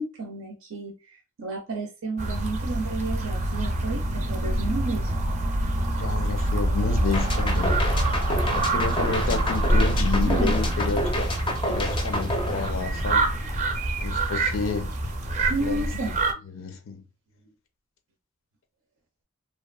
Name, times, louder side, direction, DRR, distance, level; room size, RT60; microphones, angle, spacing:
voice 1, 0.0-5.1 10.1-10.6 15.5-16.4, right 3 dB, 85° right, 0.5 m, -32 dB
sound 1, 2.2-16.3, right 1 dB, 35° right, 0.4 m, -25 dB
voice 2, 6.0-7.8 8.5-11.3 11.6-13.3 14.0-14.9 15.6-15.9 16.5-17.0, left 4 dB, 80° left, 0.5 m, -30 dB
sound 2, 7.1-13.3, left 1 dB, 25° left, 0.4 m, -30 dB
2.8 x 2.3 x 2.2 m
head